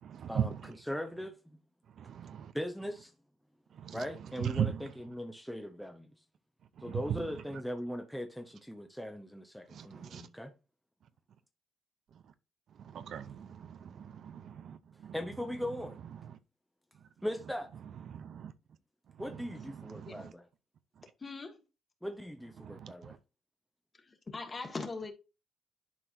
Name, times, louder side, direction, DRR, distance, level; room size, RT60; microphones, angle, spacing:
voice 1, 0.0-0.7 1.9-2.5 3.7-4.0 4.4-4.9 6.8-7.4 9.7-10.3 12.1-12.2 12.7-15.1 16.2-16.4 18.1-18.5 19.1-20.3 22.6-23.2, right 9 dB, 65° right, 0.6 m, -39 dB
voice 2, 0.9-1.4 2.5-3.1 3.9-6.1 6.8-10.5 15.1-16.0 17.2-17.7 19.2-20.4 22.0-23.2, equal, ahead, 0.8 m, -39 dB
voice 3, 21.2-21.6 24.0-25.1, left 3 dB, 30° left, 1.8 m, -41 dB
11.0 x 4.6 x 2.7 m
cardioid pair, 90°, 0 cm